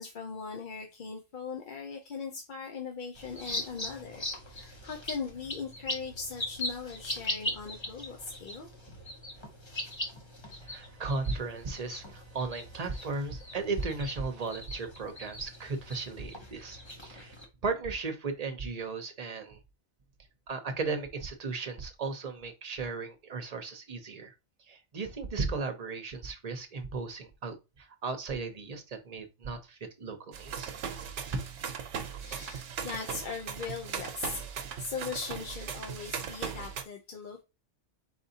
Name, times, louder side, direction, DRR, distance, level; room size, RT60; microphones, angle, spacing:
voice 1, 0.0-8.7 32.2-34.4 34.8-37.4, left 5 dB, 50° left, 0.7 m, -39 dB
sound 1, 3.1-17.4, left 1 dB, 25° left, 0.9 m, -40 dB
voice 2, 10.6-17.4 17.6-19.6 20.5-24.3 24.6-30.7, right 4 dB, 40° right, 0.7 m, -36 dB
sound 2, 30.3-36.8, right 7 dB, 80° right, 1.0 m, -38 dB
4.3 x 4.0 x 2.7 m
omnidirectional pair, 1.2 m